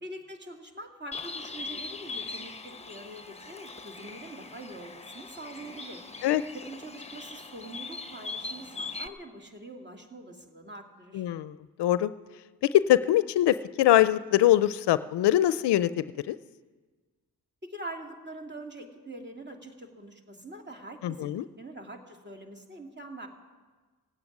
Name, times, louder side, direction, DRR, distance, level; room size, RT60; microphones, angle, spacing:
voice 1, 0.0-6.1 6.5-11.3 17.6-21.3 21.6-23.3, right 1 dB, 25° right, 3 dB, 2.6 m, -44 dB
Bird, 1.1-9.1, left 3 dB, 15° left, 1.0 m, -41 dB
voice 2, 11.1-12.1 12.6-16.4 21.0-21.5, left 13 dB, 80° left, 16 dB, 0.5 m, -23 dB
17.0 x 8.7 x 9.4 m, 1.4 s
supercardioid pair, 40°, 40 cm